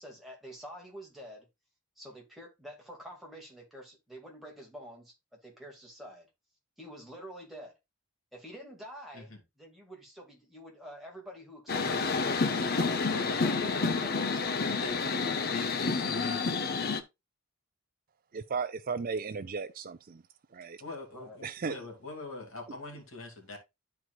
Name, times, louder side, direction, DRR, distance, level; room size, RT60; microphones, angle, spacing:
voice 1, 0.0-1.5 2.0-5.1 5.4-6.3 6.8-7.7 8.3-14.8 21.1-21.4, equal, ahead, 2.1 m, -48 dB
sound 1, 11.7-17.0, left 4 dB, 45° left, 0.7 m, -29 dB
voice 2, 12.3-14.0 14.7-16.7 20.8-23.6, left 3 dB, 60° left, 2.3 m, -43 dB
voice 3, 18.3-20.2 20.5-20.8 21.4-21.8, right 5 dB, 40° right, 0.4 m, -35 dB
11.5 x 4.7 x 2.4 m
head